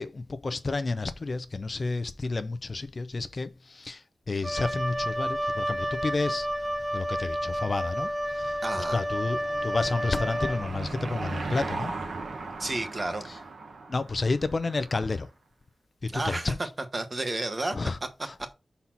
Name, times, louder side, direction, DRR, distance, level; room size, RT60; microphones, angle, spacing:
voice 1, 0.0-4.0 4.3-6.5 6.9-8.1 8.4-8.5 8.9-11.9 13.9-15.3 16.0-16.6 17.7-18.0 18.3-18.5, left 3 dB, 40° left, 0.6 m, -30 dB
Wind instrument woodwind instrument, 4.4-11.0, equal, 10° right, 0.5 m, -30 dB
Car passing by / Engine, 8.3-15.1, right 3 dB, 75° right, 1.3 m, -38 dB
voice 2, 8.6-9.0 12.6-13.2 16.1-16.7 16.9-17.8 18.0-18.3, right 2 dB, 30° right, 1.1 m, -31 dB
5.7 x 4.1 x 5.9 m
wide cardioid pair, 120°, 0 cm